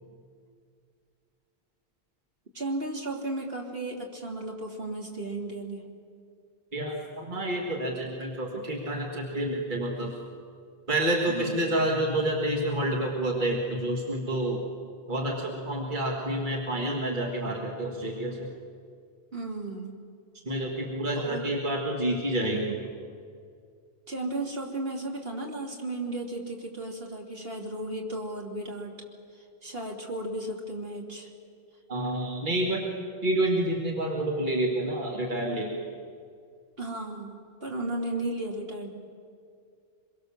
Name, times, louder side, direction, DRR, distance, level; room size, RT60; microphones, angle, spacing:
voice 1, 2.5-5.9 11.3-11.7 19.3-20.0 21.2-21.5 24.1-29.0 29.3-31.3 36.8-38.9, right 2 dB, 65° right, 0 dB, 3.0 m, -34 dB
voice 2, 6.7-10.1 10.9-14.6 15.1-18.5 20.5-22.8 31.9-32.9 33.2-35.9, right 1 dB, 50° right, -1 dB, 2.3 m, -28 dB
25.5 x 23.0 x 7.3 m, 2.3 s
omnidirectional pair, 1.1 m